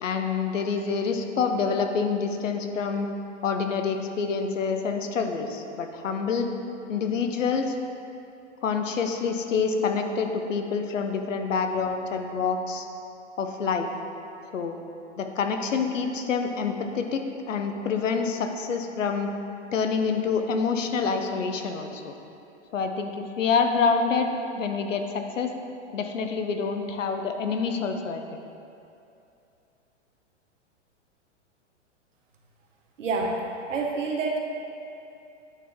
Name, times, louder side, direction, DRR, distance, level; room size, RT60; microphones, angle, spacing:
voice 1, 0.0-3.1 3.4-6.5 6.9-7.8 8.6-12.9 13.4-13.9 14.5-14.8 15.2-19.3 19.7-22.1 22.7-25.5 25.9-28.4, left 5 dB, 90° left, 5 dB, 0.8 m, -27 dB
voice 2, 33.0-34.4, right 3 dB, 85° right, 0 dB, 1.2 m, -28 dB
9.0 x 4.6 x 3.6 m, 2.7 s
hypercardioid pair, 125°, 37 cm